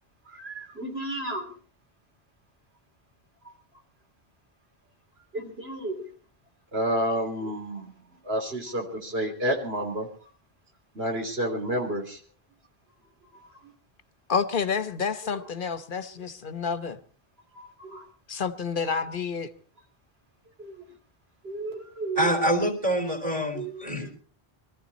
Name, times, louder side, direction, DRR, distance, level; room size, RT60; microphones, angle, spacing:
voice 1, 0.3-1.5 5.3-6.0 6.7-7.9 8.3-10.1 11.0-12.2 13.3-13.5 17.5-18.0 20.6-20.7 21.4-22.3 23.5-24.1, right 1 dB, 80° right, 3.6 m, -31 dB
voice 2, 14.3-17.0 18.3-19.5, left 6 dB, 55° left, 1.1 m, -29 dB
voice 3, 22.2-24.1, equal, 35° right, 4.4 m, -26 dB
22.0 x 14.0 x 4.2 m
omnidirectional pair, 1.0 m